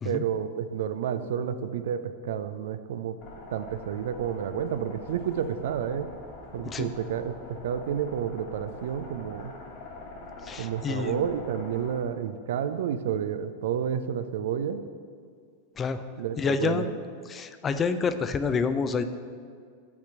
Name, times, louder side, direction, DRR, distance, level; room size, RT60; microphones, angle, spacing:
voice 1, 0.0-3.2 3.5-6.1 6.5-9.5 10.6-14.8 16.2-16.8, right 8 dB, 55° right, 11 dB, 0.3 m, -30 dB
sound 1, 3.2-12.0, left 2 dB, 40° left, 1.4 m, -45 dB
voice 2, 10.4-11.3 15.8-16.0 16.4-16.9 17.3-19.0, left 5 dB, 20° left, 10 dB, 0.3 m, -28 dB
6.0 x 4.3 x 5.9 m, 2.2 s
figure-of-eight pair, 90°, 0 cm